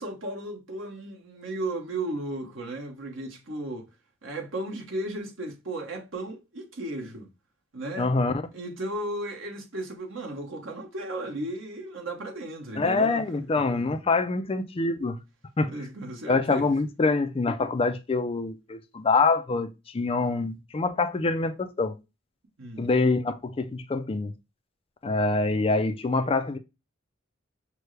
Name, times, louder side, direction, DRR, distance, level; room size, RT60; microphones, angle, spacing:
voice 1, 0.0-3.9 4.2-7.3 7.7-8.1 8.5-13.2 13.6-14.0 15.7-16.7 20.2-20.5 22.6-22.9, right 1 dB, 75° right, 1.2 m, -35 dB
voice 2, 8.0-8.5 12.8-15.2 15.6-15.7 16.3-22.0 22.8-24.3 25.0-26.6, left 3 dB, 30° left, 0.4 m, -25 dB
6.0 x 2.2 x 3.2 m
head